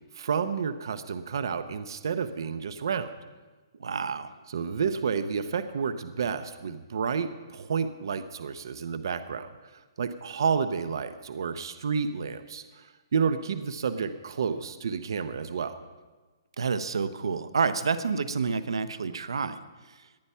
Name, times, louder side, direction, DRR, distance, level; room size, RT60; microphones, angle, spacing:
voice 1, 0.1-3.1 4.5-15.8, right 6 dB, 55° right, 11 dB, 0.9 m, -30 dB
voice 2, 3.8-4.3 16.6-19.6, right 5 dB, 85° right, 12 dB, 1.0 m, -28 dB
18.5 x 10.5 x 5.7 m, 1.3 s
hypercardioid pair, 170°, 3 cm